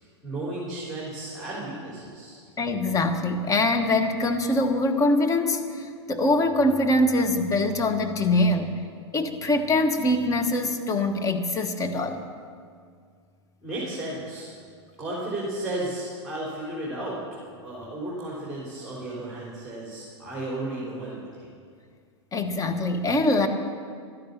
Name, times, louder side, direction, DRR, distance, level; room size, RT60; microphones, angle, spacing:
voice 1, 0.2-2.4 13.6-14.5 15.0-17.2 17.6-21.5, right 1 dB, ahead, -7 dB, 4.0 m, -34 dB
voice 2, 2.6-8.7 9.1-12.3 22.3-23.5, left 2 dB, 20° left, 7 dB, 1.2 m, -23 dB
13.0 x 10.5 x 7.0 m, 2.1 s
hypercardioid pair, 100°, 15 cm